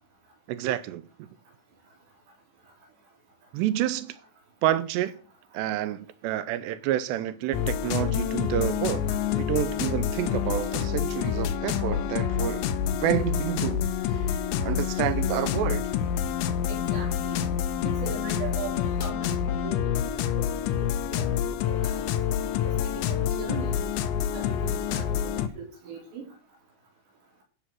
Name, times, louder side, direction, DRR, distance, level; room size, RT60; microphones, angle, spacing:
voice 1, 0.5-1.3 3.5-4.2 4.6-5.1 5.5-12.7 13.0-13.8 14.6-15.8, right 12 dB, 80° right, 2.6 m, -29 dB
sound 1, 7.5-25.5, left 8 dB, 80° left, 3.1 m, -27 dB
voice 2, 16.7-17.5 17.8-19.8 20.1-20.5 20.8-22.0 22.6-23.9 24.3-26.2, right 4 dB, 65° right, 5.9 m, -39 dB
13.5 x 5.7 x 6.1 m
omnidirectional pair, 5.3 m